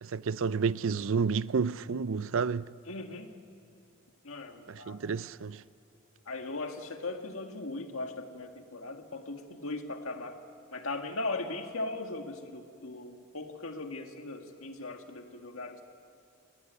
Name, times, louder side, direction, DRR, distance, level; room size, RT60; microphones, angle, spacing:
voice 1, 0.0-2.7 4.7-5.6, right 5 dB, 65° right, 0.5 m, -30 dB
voice 2, 2.9-3.3 4.2-5.0 6.3-10.4 10.7-15.8, left 2 dB, 70° left, 2.0 m, -38 dB
28.5 x 19.0 x 9.4 m
head